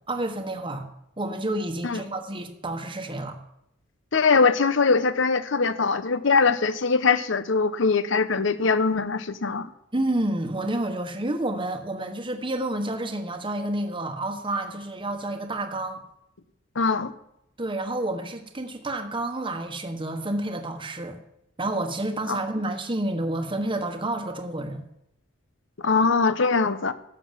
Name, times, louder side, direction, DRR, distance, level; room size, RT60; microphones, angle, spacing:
voice 1, 0.1-0.8 1.2-3.4 9.9-16.0 17.6-21.2 21.6-24.9, right 1 dB, 25° right, 4 dB, 1.3 m, -29 dB
voice 2, 4.1-9.7 16.8-17.1 22.3-22.4 25.8-26.9, left 4 dB, 70° left, 13 dB, 0.9 m, -22 dB
13.0 x 8.4 x 7.4 m, 0.80 s
head